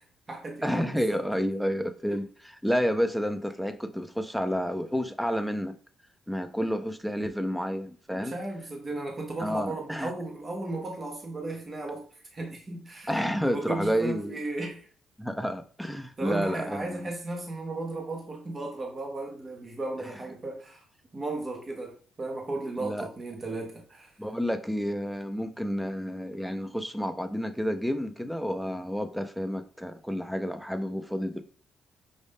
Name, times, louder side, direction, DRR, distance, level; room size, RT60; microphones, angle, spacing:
voice 1, 0.0-1.2 8.1-12.0 12.3-14.9 16.2-20.8 21.1-24.1, right 2 dB, 35° right, 0.8 m, -35 dB
voice 2, 0.6-5.8 6.3-8.3 9.4-10.1 13.1-14.4 15.2-17.1 22.8-23.1 24.2-31.4, equal, ahead, 0.5 m, -30 dB
5.3 x 2.5 x 3.5 m
cardioid pair, 90°, 0 cm